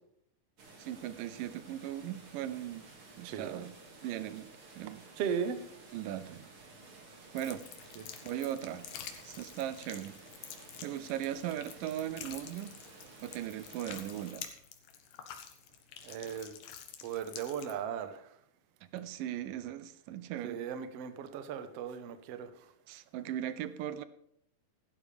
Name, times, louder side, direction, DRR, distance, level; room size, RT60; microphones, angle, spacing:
sound 1, 0.6-14.3, right 3 dB, 45° right, 2.8 m, -54 dB
voice 1, 0.8-2.8 3.2-3.7 4.0-4.5 4.8-5.0 5.9-6.5 7.3-7.7 8.2-8.9 9.3-10.1 10.8-12.8 13.2-14.5 18.9-20.6 22.9-24.0, right 11 dB, 85° right, 13 dB, 2.4 m, -38 dB
voice 2, 3.2-3.6 5.2-5.6 8.0-8.1 16.0-16.6 17.0-18.3 20.4-22.5, right 7 dB, 65° right, 9 dB, 1.7 m, -37 dB
sound 2, 7.4-17.7, left 9 dB, 80° left, 2.8 m, -48 dB
15.5 x 12.0 x 3.4 m, 0.71 s
omnidirectional pair, 3.8 m